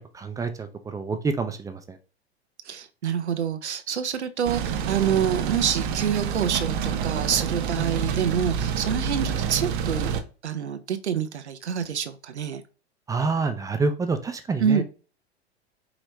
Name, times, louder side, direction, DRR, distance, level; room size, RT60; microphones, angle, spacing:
voice 1, 0.1-2.0 7.8-8.0 13.1-14.8, right 4 dB, 10° right, 7 dB, 0.4 m, -27 dB
voice 2, 2.6-10.1 10.4-12.6 14.6-14.8, right 8 dB, 85° right, 10 dB, 0.6 m, -26 dB
sound 1, 4.4-10.2, right 7 dB, 50° right, 0.7 m, -28 dB
5.0 x 3.0 x 3.0 m, 0.35 s
figure-of-eight pair, 95°, 33 cm